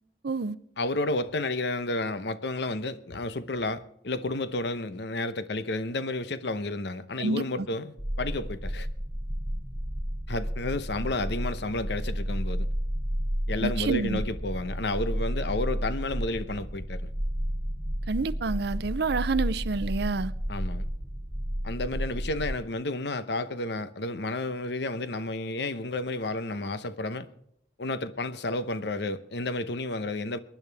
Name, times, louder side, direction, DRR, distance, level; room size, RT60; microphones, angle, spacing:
voice 1, 0.2-0.6 7.2-7.7 13.6-14.2 18.1-20.3, right 3 dB, 65° right, 0.6 m, -28 dB
voice 2, 0.8-8.9 10.3-12.7 13.5-17.1 20.5-20.8 21.6-27.3 27.8-30.4, left 2 dB, 65° left, 0.9 m, -31 dB
sound 1, 8.0-22.6, equal, 10° right, 2.1 m, -32 dB
23.0 x 10.5 x 3.5 m
head